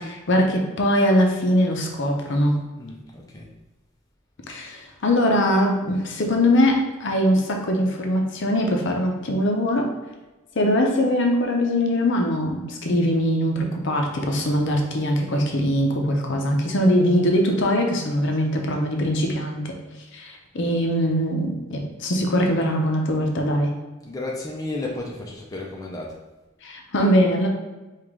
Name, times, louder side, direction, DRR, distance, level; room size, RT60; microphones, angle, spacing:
voice 1, 0.0-2.6 4.5-9.9 10.6-19.7 20.1-23.7 26.6-27.5, equal, 60° left, 2 dB, 0.6 m, -22 dB
voice 2, 2.8-3.5 24.0-26.1, left 2 dB, 15° left, -2 dB, 0.5 m, -33 dB
4.9 x 2.5 x 3.6 m, 1.1 s
head